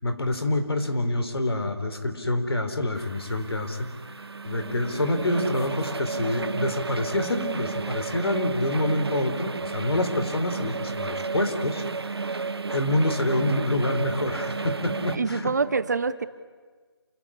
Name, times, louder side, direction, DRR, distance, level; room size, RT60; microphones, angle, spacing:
voice 1, 0.0-3.9 4.5-11.8 12.7-15.5, left 1 dB, 65° left, 8 dB, 3.6 m, -26 dB
sound 1, 2.9-15.2, right 4 dB, 65° right, 1.1 m, -32 dB
voice 2, 15.1-16.2, right 4 dB, 40° right, 14 dB, 0.9 m, -25 dB
28.0 x 16.0 x 9.9 m, 1.5 s
figure-of-eight pair, 165°, 14 cm